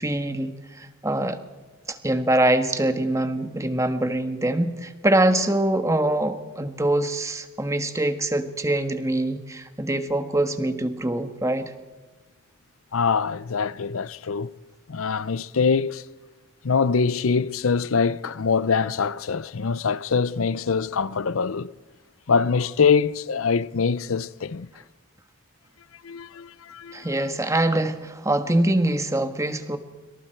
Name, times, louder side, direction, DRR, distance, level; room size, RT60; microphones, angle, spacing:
voice 1, 0.0-1.4 1.9-11.7 26.9-29.8, right 1 dB, 15° right, 1.4 m, -24 dB
voice 2, 12.9-14.5 14.9-16.0 16.6-21.7 22.3-24.7 26.0-27.1, left 5 dB, 75° left, 0.6 m, -24 dB
27.0 x 25.0 x 4.5 m
head